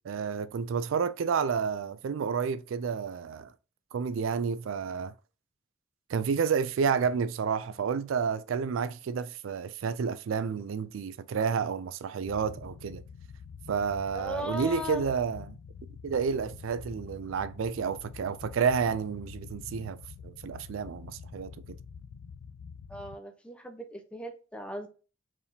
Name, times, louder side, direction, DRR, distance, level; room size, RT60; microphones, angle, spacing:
voice 1, 0.0-3.5 3.9-5.1 6.1-13.0 13.7-15.6 16.0-20.0 20.2-21.8, right 6 dB, 80° right, 0.4 m, -30 dB
sound 1, 12.2-23.2, left 6 dB, 90° left, 0.3 m, -46 dB
voice 2, 14.1-15.0 22.9-24.9, equal, 5° left, 0.7 m, -38 dB
4.6 x 3.5 x 2.7 m
head